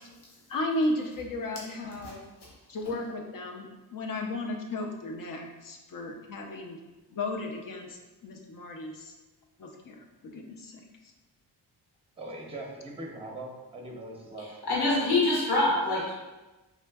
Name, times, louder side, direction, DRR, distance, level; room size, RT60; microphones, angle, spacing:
voice 1, 0.5-2.2 2.7-6.8 7.1-9.1 9.6-10.8, left 2 dB, 50° left, 2 dB, 0.6 m, -34 dB
voice 2, 12.2-14.5, right 1 dB, 15° right, 0 dB, 0.6 m, -41 dB
voice 3, 14.4-16.1, left 2 dB, 70° left, -5 dB, 1.0 m, -25 dB
3.7 x 2.4 x 2.2 m, 1.1 s
cardioid pair, 65°, 42 cm